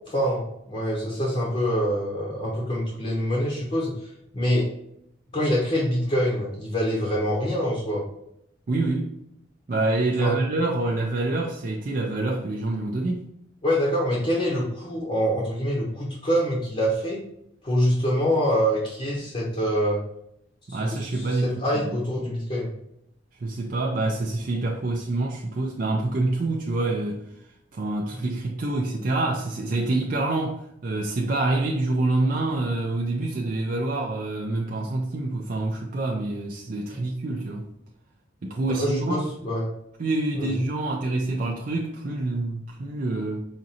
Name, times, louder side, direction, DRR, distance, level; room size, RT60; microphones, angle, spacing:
voice 1, 0.1-4.1 4.3-4.7 5.3-8.0 10.2-10.4 13.6-17.2 17.6-20.0 20.7-22.7 36.9-37.0 38.7-39.7 40.4-40.6, equal, 30° left, 0.8 m, -25 dB
voice 2, 8.7-9.1 9.7-13.3 20.7-22.0 23.4-27.2 27.7-37.7 38.4-39.3 40.0-43.5, right 2 dB, 45° right, 0.4 m, -26 dB
5.0 x 2.5 x 2.8 m
head